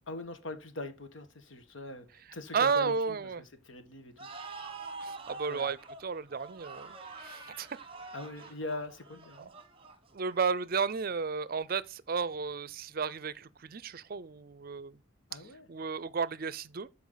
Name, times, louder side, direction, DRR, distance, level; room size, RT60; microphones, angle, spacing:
voice 1, 0.1-2.1 2.3-3.2 3.6-4.3 5.5-5.7 8.1-9.5 15.3-15.7, left 2 dB, 85° left, 1.5 m, -42 dB
voice 2, 2.5-3.4 5.0-7.8 9.4-9.5 10.1-15.0 15.3-15.4 15.7-16.9, right 5 dB, 50° right, 0.5 m, -33 dB
sound 1, 4.2-10.6, right 3 dB, 30° right, 1.2 m, -46 dB
12.0 x 4.8 x 3.9 m
head